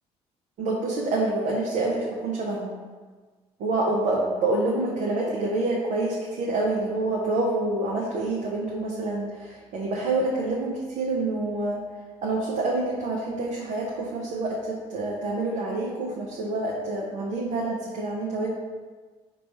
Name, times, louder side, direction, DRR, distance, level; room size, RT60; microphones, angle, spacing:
voice 1, 0.6-2.8 3.6-11.8 12.2-18.5, right 2 dB, 65° right, -3 dB, 0.6 m, -27 dB
4.1 x 2.3 x 4.2 m, 1.4 s
hypercardioid pair, 55°, 15 cm